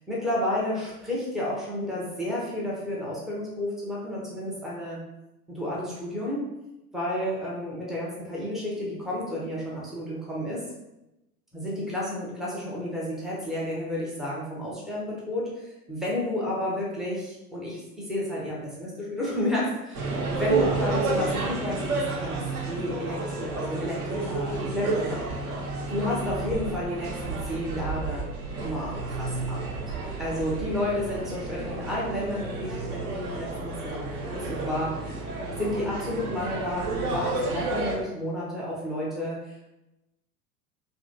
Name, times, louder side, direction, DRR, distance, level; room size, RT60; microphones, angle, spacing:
voice 1, 0.1-5.0 5.5-6.4 6.9-10.6 11.5-17.8 18.1-20.0 20.3-25.3 25.9-28.2 28.5-29.8 30.2-35.1 35.6-39.7, left 1 dB, ahead, -7 dB, 0.3 m, -31 dB
sound 1, 19.9-38.0, right 3 dB, 70° right, 0.8 m, -31 dB
2.7 x 2.5 x 2.6 m, 0.94 s
figure-of-eight pair, 85°, 46 cm